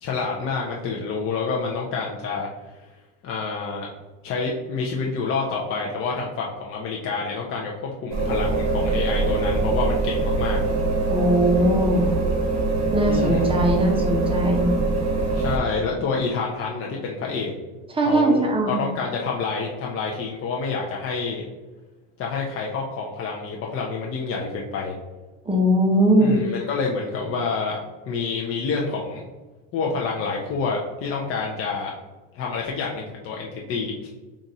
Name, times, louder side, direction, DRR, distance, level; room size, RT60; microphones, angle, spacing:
voice 1, 0.0-2.8 3.2-3.9 4.2-10.6 12.9-13.4 15.3-17.5 18.0-21.4 22.2-25.0 26.2-27.8 28.1-29.2 29.7-31.9 32.3-34.1, left 4 dB, 35° left, -2 dB, 0.5 m, -28 dB
sound 1, 8.1-15.6, right 3 dB, 45° right, 1.2 m, -23 dB
voice 2, 11.1-12.1 12.9-14.7 17.9-18.9 25.5-26.4, right 1 dB, 15° right, 1 dB, 0.8 m, -20 dB
4.0 x 2.5 x 4.1 m, 1.2 s
supercardioid pair, 115°, 38 cm